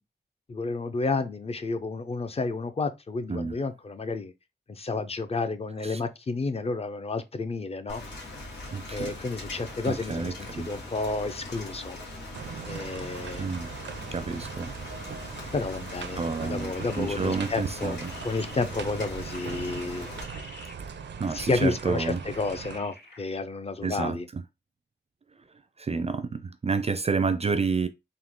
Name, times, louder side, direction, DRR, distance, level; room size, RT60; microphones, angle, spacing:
voice 1, 0.5-4.3 4.7-8.0 8.9-12.0 12.7-13.5 15.5-18.0 18.2-20.1 21.3-24.3, left 3 dB, 35° left, 0.5 m, -31 dB
voice 2, 3.3-3.6 5.8-6.0 8.7-9.1 9.9-10.7 13.4-13.7 14.1-14.8 16.2-18.1 21.2-22.2 23.8-24.4 25.8-27.9, right 4 dB, 35° right, 0.4 m, -29 dB
Rain, 7.9-20.2, left 2 dB, 90° left, 1.9 m, -41 dB
sound 1, 12.3-22.8, right 6 dB, 85° right, 0.5 m, -40 dB
sound 2, 16.6-23.4, left 2 dB, 65° left, 1.0 m, -50 dB
3.8 x 2.7 x 3.6 m
wide cardioid pair, 120°, 18 cm